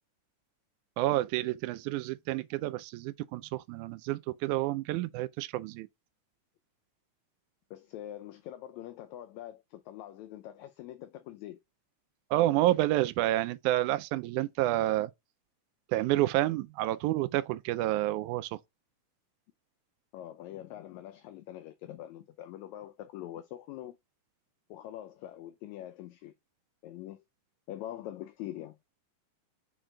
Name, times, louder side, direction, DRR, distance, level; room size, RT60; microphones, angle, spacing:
voice 1, 1.0-5.9 12.3-15.1 15.9-18.5, right 15 dB, 85° right, 2.0 m, -29 dB
voice 2, 7.7-11.6 20.1-24.0 24.7-26.3 26.8-27.2 27.7-28.8, left 13 dB, 80° left, 1.8 m, -44 dB
6.2 x 3.8 x 4.4 m
omnidirectional pair, 3.5 m